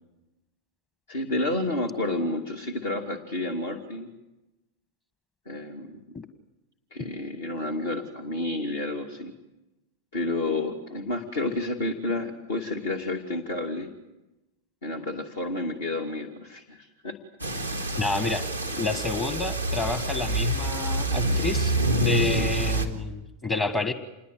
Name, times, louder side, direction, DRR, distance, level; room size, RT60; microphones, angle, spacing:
voice 1, 1.1-4.1 5.5-6.0 6.9-9.3 10.1-13.9 14.8-17.2 17.8-18.0 18.7-18.8 22.3-22.5, left 2 dB, 60° left, 3 dB, 2.6 m, -30 dB
sound 1, 17.4-22.9, right 2 dB, 90° left, 2.3 m, -27 dB
voice 2, 18.0-18.5 18.8-23.9, left 3 dB, 25° left, 9 dB, 1.6 m, -29 dB
27.5 x 21.5 x 8.0 m, 1.0 s
figure-of-eight pair, 90°, 0 cm